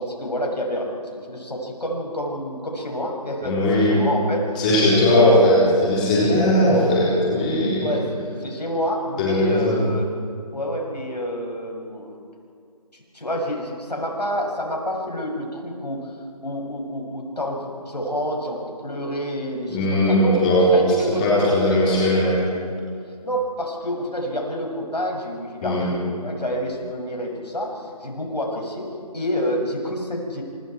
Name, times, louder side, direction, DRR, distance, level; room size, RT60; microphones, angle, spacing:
voice 1, 0.0-4.7 5.1-5.3 6.3-6.5 7.8-8.1 8.4-10.1 10.5-12.2 12.9-16.1 16.4-20.4 20.7-21.8 23.2-30.4, equal, 85° left, 1 dB, 6.8 m, -28 dB
voice 2, 3.4-3.9 4.6-7.9 9.2-9.8 19.7-20.7 21.2-22.3 25.6-25.9, left 1 dB, 10° left, -7 dB, 4.0 m, -18 dB
28.0 x 26.0 x 4.7 m, 2.4 s
figure-of-eight pair, 170°, 21 cm